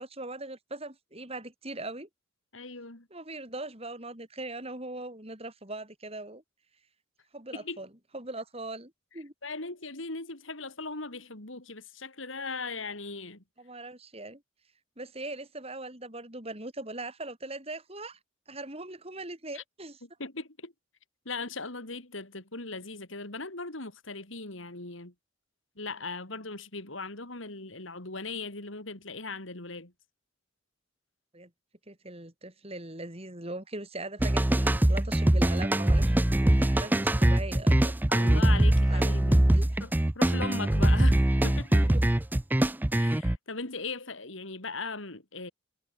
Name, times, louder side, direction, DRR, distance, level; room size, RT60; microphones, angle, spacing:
voice 1, 0.0-2.1 3.1-6.4 7.3-9.3 13.6-14.4 15.0-18.2 18.5-20.0 31.3-31.5 31.9-38.0 38.9-39.1 39.5-39.7 41.7-42.0, right 2 dB, 30° right, 5.2 m, -40 dB
voice 2, 2.5-3.1 7.5-7.8 9.4-13.4 19.5-19.6 20.2-20.7 21.3-25.1 25.8-29.9 38.1-39.5 39.8-42.0 42.9-45.5, left 3 dB, 80° left, 4.1 m, -38 dB
sound 1, 34.2-43.4, right 1 dB, 10° right, 0.4 m, -23 dB
head